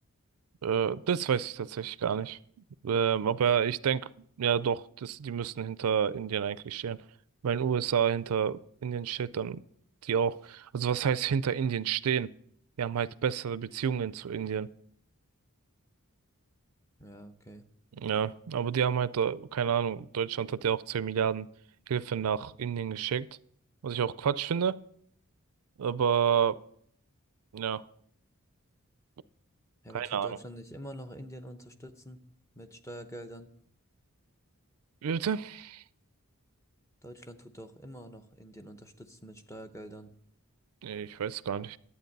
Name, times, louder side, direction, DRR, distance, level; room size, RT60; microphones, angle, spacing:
voice 1, 0.6-2.4 2.8-4.1 4.4-7.0 7.4-9.6 10.0-12.3 12.8-14.7 18.0-21.5 21.9-23.3 23.8-24.8 25.8-26.6 27.5-27.8 29.9-30.4 35.0-35.8 40.8-41.8, right 7 dB, 90° right, 0.4 m, -29 dB
voice 2, 17.0-17.6 29.8-32.2 32.5-33.5 37.0-40.1, equal, 15° left, 0.8 m, -46 dB
11.5 x 8.6 x 5.3 m
head